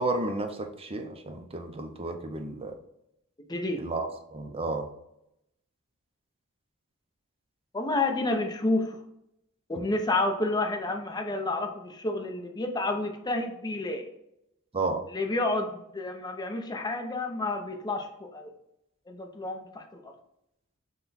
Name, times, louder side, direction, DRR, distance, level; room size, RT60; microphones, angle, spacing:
voice 1, 0.0-2.7 3.8-4.9 14.7-15.0, right 2 dB, 25° right, 5 dB, 0.5 m, -32 dB
voice 2, 3.5-3.8 7.7-9.0 9.7-14.0 15.1-18.5 19.1-20.1, left 2 dB, 20° left, 3 dB, 0.6 m, -30 dB
5.7 x 2.3 x 4.0 m, 0.82 s
head